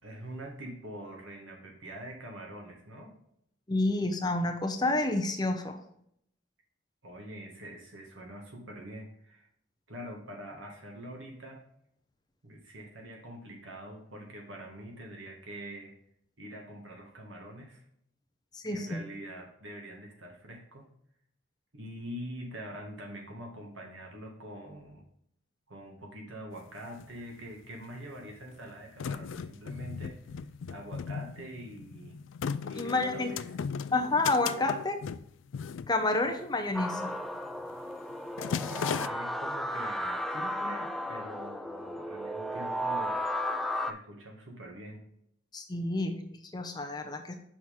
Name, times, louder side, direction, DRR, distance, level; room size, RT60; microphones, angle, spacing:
voice 1, 0.0-3.1 7.0-9.5 9.9-11.6 12.4-15.9 16.4-17.8 18.7-20.9 21.7-25.0 25.7-30.2 30.7-32.2 32.6-33.6 38.4-43.2 43.9-45.0, right 1 dB, 85° right, 1 dB, 2.0 m, -44 dB
voice 2, 3.7-5.8 18.5-19.0 32.8-33.3 33.9-35.0 35.9-37.2 45.5-47.3, left 2 dB, 20° left, 4 dB, 0.8 m, -29 dB
sound 1, 26.6-26.7 26.8-27.7 28.3-36.6 36.9-37.2 37.5-37.8 38.1-39.1, left 6 dB, 80° left, 0.4 m, -37 dB
sound 2, 36.7-43.9, equal, ahead, 0.3 m, -34 dB
6.2 x 6.1 x 3.6 m, 0.72 s
head